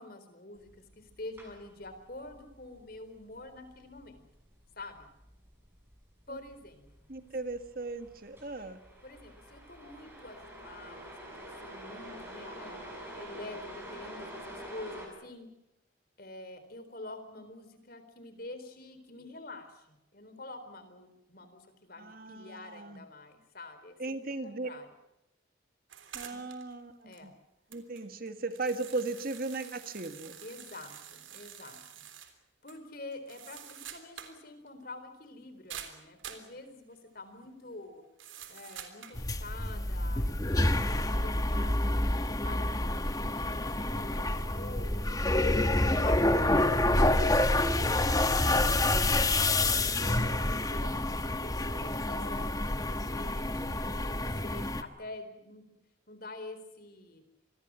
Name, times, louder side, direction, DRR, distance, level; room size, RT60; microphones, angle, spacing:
voice 1, 0.0-4.3 4.8-5.1 6.3-7.1 8.6-8.7 9.0-12.8 13.1-15.5 16.2-24.9 26.3-26.4 27.0-27.3 30.4-32.1 32.6-38.0 38.5-41.7 42.3-48.9 49.6-55.6 56.1-57.2, left 2 dB, 50° left, 9 dB, 4.1 m, -47 dB
sound 1, 0.6-15.1, equal, 10° right, 7.1 m, -48 dB
voice 2, 7.1-8.8 22.0-23.0 24.0-24.7 26.1-27.3 27.7-30.4, right 3 dB, 50° right, 8 dB, 1.8 m, -37 dB
sound 2, 25.9-26.7 27.1-27.2 27.7-32.3 32.7-32.8 33.1-34.4 34.7-34.8 35.7-36.5 38.2-39.2, right 9 dB, 85° right, 3.4 m, -47 dB
sound 3, 39.1-54.8, left 1 dB, 20° left, 1.3 m, -28 dB
27.0 x 21.5 x 6.3 m, 0.88 s
head